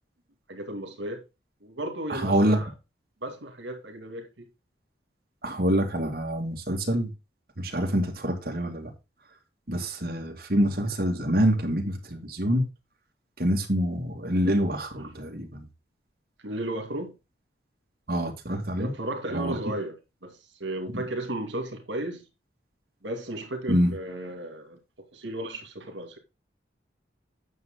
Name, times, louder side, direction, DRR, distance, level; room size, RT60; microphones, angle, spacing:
voice 1, 0.5-1.2 1.6-2.7 3.2-4.5 15.0-15.1 16.4-17.1 18.8-19.9 20.2-22.2 23.0-24.8 25.1-26.2, right 1 dB, 80° right, 2.4 m, -34 dB
voice 2, 2.1-2.6 5.4-7.1 7.6-8.9 9.7-12.7 13.4-15.6 18.1-18.9 19.3-19.7 20.9-21.0 23.7-23.9, equal, 50° right, 2.2 m, -26 dB
9.4 x 6.7 x 3.8 m
head